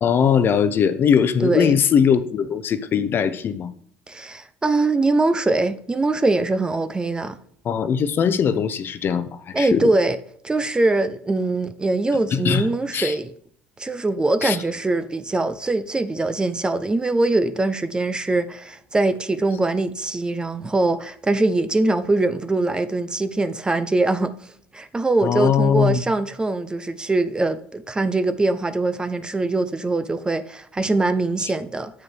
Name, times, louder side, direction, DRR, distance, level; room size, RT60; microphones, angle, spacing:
voice 1, 0.0-3.7 7.6-9.9 12.3-12.7 12.9-13.1 14.4-14.6 25.2-26.0 31.4-31.5, left 7 dB, 40° left, 0.7 m, -20 dB
voice 2, 1.4-1.8 4.1-7.4 9.5-10.2 10.4-13.3 13.8-24.4 24.7-31.9, right 2 dB, 15° right, 0.6 m, -22 dB
7.2 x 4.9 x 4.7 m
supercardioid pair, 95°, 5 cm